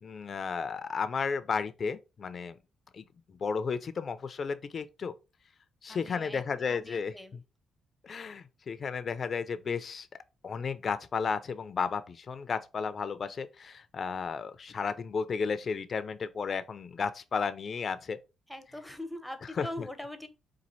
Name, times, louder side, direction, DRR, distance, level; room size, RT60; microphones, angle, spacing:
voice 1, 0.0-2.6 2.9-5.1 5.8-7.4 8.0-10.1 10.4-18.2 19.6-19.9, left 5 dB, 45° left, 0.5 m, -33 dB
voice 2, 5.9-7.4 18.5-20.3, left 1 dB, 5° left, 0.7 m, -42 dB
4.2 x 2.5 x 4.0 m
cardioid pair, 95°, 0 cm